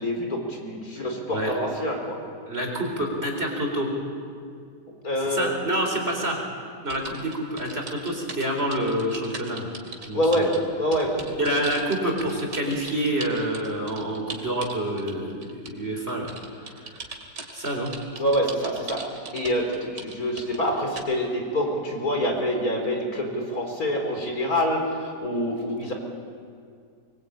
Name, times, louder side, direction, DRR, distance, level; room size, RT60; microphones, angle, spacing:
voice 1, 0.0-2.2 5.0-5.5 10.1-11.3 18.2-25.9, equal, 60° left, 2 dB, 4.7 m, -26 dB
voice 2, 1.0-1.5 2.5-3.9 5.2-6.4 6.8-9.7 10.1-10.5 11.4-16.3 16.6-17.0 17.5-17.9, right 1 dB, 35° right, 2 dB, 4.5 m, -28 dB
sound 1, 6.9-15.8 16.1-21.1, right 4 dB, 90° right, 3.3 m, -39 dB
25.0 x 23.0 x 8.8 m, 2.3 s
omnidirectional pair, 1.8 m